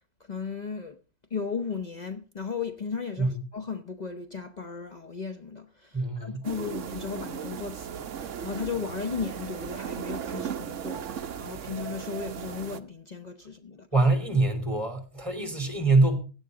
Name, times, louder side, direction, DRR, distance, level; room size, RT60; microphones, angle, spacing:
voice 1, 0.3-1.0 1.3-11.1 11.4-13.9, left 5 dB, 65° left, 0.4 m, -35 dB
voice 2, 5.9-6.4 13.9-16.2, right 3 dB, 15° right, 3.2 m, -24 dB
sound 1, 6.4-12.8, right 8 dB, 55° right, 0.9 m, -36 dB
16.5 x 10.0 x 3.8 m
omnidirectional pair, 2.1 m